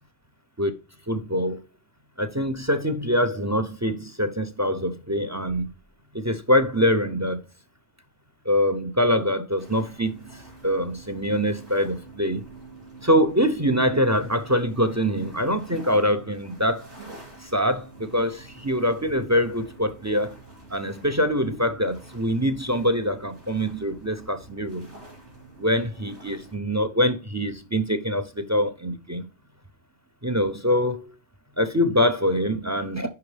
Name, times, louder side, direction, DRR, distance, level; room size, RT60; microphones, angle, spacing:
voice 1, 1.1-1.6 2.2-5.7 6.1-7.4 8.4-10.3 10.6-12.4 13.0-16.9 17.4-20.4 20.7-24.9 25.6-29.3 30.2-31.1 31.6-33.1, equal, 20° right, 0.4 m, -24 dB
sound 1, 9.6-26.6, right 2 dB, 75° right, 3.3 m, -47 dB
10.5 x 3.5 x 3.3 m
omnidirectional pair, 1.2 m